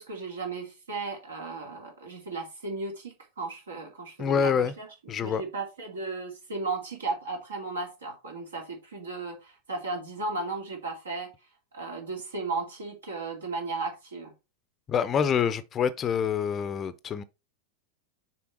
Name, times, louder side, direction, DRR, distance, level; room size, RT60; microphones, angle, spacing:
voice 1, 0.0-4.9 5.2-11.3 11.7-14.3, right 3 dB, 70° right, 2.5 m, -35 dB
voice 2, 4.2-4.7 5.1-5.4 14.9-17.2, left 7 dB, 25° left, 0.6 m, -26 dB
6.9 x 4.6 x 4.4 m
figure-of-eight pair, 90°, 0 cm